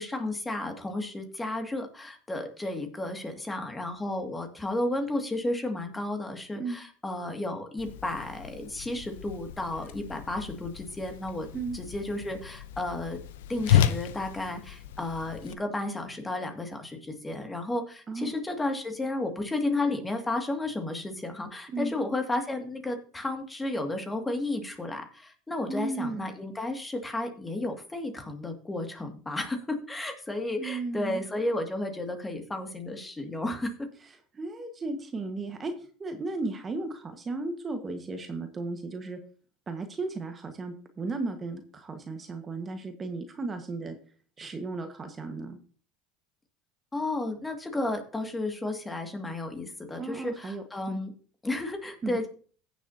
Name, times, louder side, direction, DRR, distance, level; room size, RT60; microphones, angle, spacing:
voice 1, 0.0-11.5 11.7-13.2 13.5-33.9 46.9-51.1 51.4-52.3, left 2 dB, 15° left, 5 dB, 2.1 m, -33 dB
Whoosh swoosh swish, 7.8-15.5, left 10 dB, 85° left, 0.7 m, -32 dB
voice 2, 25.7-26.3 30.6-31.2 34.3-35.7 36.0-39.2 39.7-43.9 44.4-45.6 50.0-51.0 52.0-52.2, right 3 dB, 30° right, 6 dB, 1.4 m, -35 dB
16.0 x 7.0 x 2.8 m, 0.42 s
hypercardioid pair, 90°, 0 cm